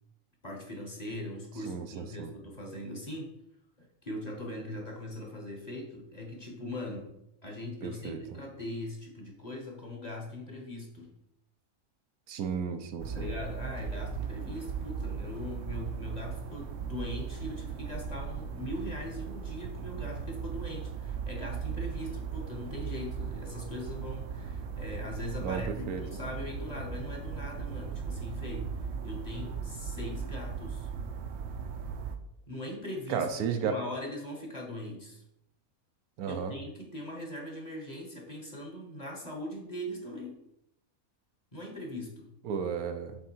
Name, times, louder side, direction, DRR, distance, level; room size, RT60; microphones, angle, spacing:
voice 1, 0.4-3.3 3.8-7.1 7.4-11.1 13.1-28.7 29.0-30.9 32.5-35.2 36.3-40.4 41.5-42.3, left 1 dB, 30° left, 1 dB, 1.1 m, -40 dB
voice 2, 1.7-2.3 7.8-8.2 12.3-13.3 25.4-26.0 33.1-33.8 36.2-36.5 42.4-43.2, right 6 dB, 90° right, 7 dB, 1.2 m, -33 dB
sound 1, 13.0-32.2, right 6 dB, 60° right, 0.8 m, -38 dB
7.4 x 3.7 x 4.5 m, 0.81 s
omnidirectional pair, 1.5 m